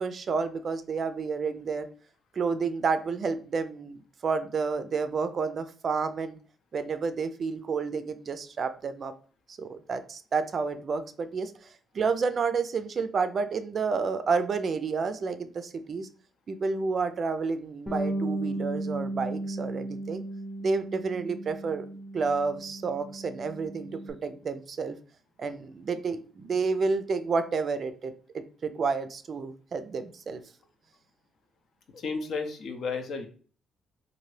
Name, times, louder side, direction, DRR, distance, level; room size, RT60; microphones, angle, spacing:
voice 1, 0.0-1.9 2.4-6.4 6.7-9.1 9.5-11.5 11.9-16.1 16.5-20.2 20.6-21.9 22.1-25.0 25.4-30.4, right 4 dB, 50° right, 10 dB, 0.3 m, -30 dB
Bass guitar, 17.9-24.1, right 1 dB, 5° right, 0.6 m, -35 dB
voice 2, 31.9-33.3, left 4 dB, 65° left, 6 dB, 0.6 m, -33 dB
2.8 x 2.5 x 3.1 m, 0.42 s
cardioid pair, 90°, 0 cm